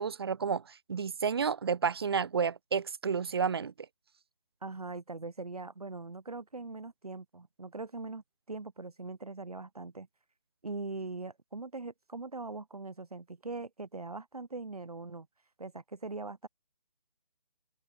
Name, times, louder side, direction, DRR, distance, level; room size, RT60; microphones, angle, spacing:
voice 1, 0.0-3.7, right 6 dB, 40° right, 0.7 m, -31 dB
voice 2, 4.6-10.1 10.6-15.3 15.6-16.5, right 3 dB, 65° right, 3.8 m, -41 dB
figure-of-eight pair, 145°, 21 cm